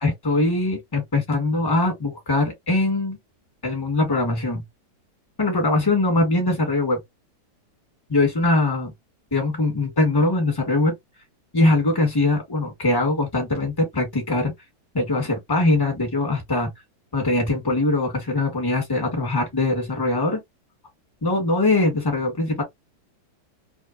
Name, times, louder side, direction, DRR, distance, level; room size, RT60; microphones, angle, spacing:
voice 1, 0.0-3.2 3.6-4.6 5.4-7.0 8.1-8.9 9.3-10.9 11.5-14.5 14.9-16.7 17.1-20.4 21.2-22.6, left 2 dB, 15° left, 1.2 m, -22 dB
2.8 x 2.4 x 2.4 m
omnidirectional pair, 1.9 m